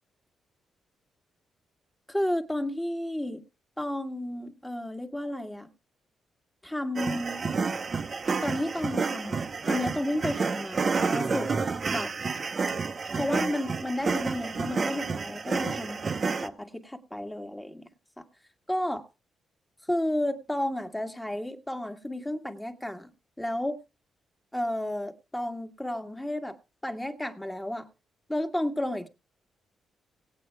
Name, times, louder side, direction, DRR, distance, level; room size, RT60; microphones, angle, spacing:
voice 1, 2.1-3.4 3.8-5.7 6.6-7.4 8.4-12.1 13.1-16.0 16.4-17.8 18.2-18.3 18.7-19.1 19.9-23.1 23.4-23.8 24.5-26.6 26.8-27.9 28.3-29.1, left 1 dB, 10° left, 1.8 m, -32 dB
sound 1, 7.0-16.5, right 4 dB, 40° right, 1.0 m, -30 dB
18.5 x 8.7 x 3.4 m
cardioid pair, 90°, 0 cm